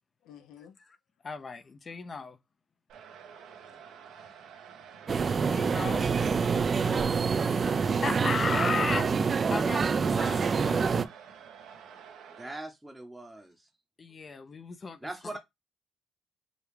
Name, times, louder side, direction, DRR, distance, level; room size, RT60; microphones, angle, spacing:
voice 1, 0.2-0.7 3.4-3.6 4.1-4.2 11.6-11.8, left 9 dB, 90° left, 0.6 m, -53 dB
voice 2, 1.2-2.4 5.5-6.1 7.6-11.1 14.0-15.0, left 4 dB, 35° left, 0.5 m, -35 dB
sound 1, 2.9-12.6, right 7 dB, 85° right, 0.8 m, -49 dB
sound 2, 5.1-11.1, right 5 dB, 40° right, 0.3 m, -26 dB
voice 3, 6.5-7.1 12.4-13.7 15.0-15.4, right 2 dB, 10° right, 0.7 m, -42 dB
4.9 x 2.3 x 3.2 m
cardioid pair, 90°, 0 cm